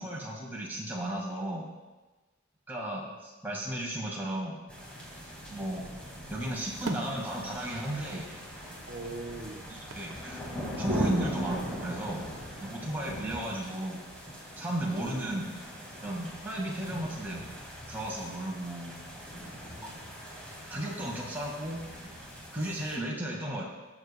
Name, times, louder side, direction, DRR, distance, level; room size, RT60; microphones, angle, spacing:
voice 1, 0.0-1.7 2.7-4.6 5.5-5.9 6.3-8.3 9.7-10.4 10.8-12.2 12.6-14.0 14.6-15.4 16.0-17.4 17.9-18.9 20.7-21.8 22.5-23.6, right 1 dB, 10° right, -4 dB, 1.9 m, -34 dB
sound 1, 4.7-23.0, equal, 5° left, 2.1 m, -40 dB
sound 2, 6.2-6.3 6.6-8.2 8.5-8.6 9.9-10.5, right 3 dB, 85° right, 0.7 m, -44 dB
voice 2, 8.9-9.7 15.0-15.3 19.6-20.7, right 2 dB, 50° right, -1 dB, 1.0 m, -43 dB
20.5 x 7.1 x 2.3 m, 1.2 s
head